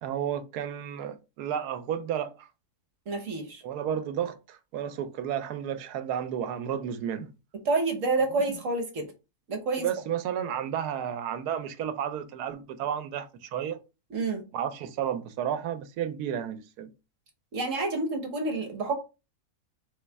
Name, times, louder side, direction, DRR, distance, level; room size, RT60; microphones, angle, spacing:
voice 1, 0.0-2.5 3.6-7.3 9.8-13.8 14.5-16.9, right 9 dB, 85° right, 1.1 m, -32 dB
voice 2, 3.1-3.6 7.7-9.1 9.5-9.8 14.1-14.4 17.5-19.0, right 3 dB, 60° right, 1.2 m, -28 dB
4.1 x 3.1 x 3.3 m
omnidirectional pair, 1.6 m